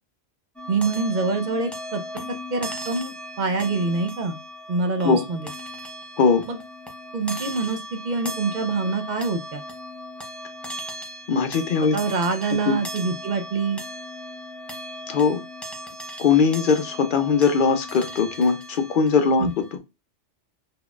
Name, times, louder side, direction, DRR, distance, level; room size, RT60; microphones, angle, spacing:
sound 1, 0.6-19.8, equal, ahead, 0.4 m, -37 dB
voice 1, 0.7-2.3 2.5-4.4 4.7-5.4 6.5-6.6 7.1-9.6 11.9-13.8 19.4-19.5, right 4 dB, 55° right, 6 dB, 0.6 m, -25 dB
voice 2, 11.3-12.0 12.7-12.8 15.1-15.4 16.2-19.5, left 5 dB, 55° left, 8 dB, 0.6 m, -20 dB
4.0 x 2.9 x 2.3 m, 0.24 s
omnidirectional pair, 1.2 m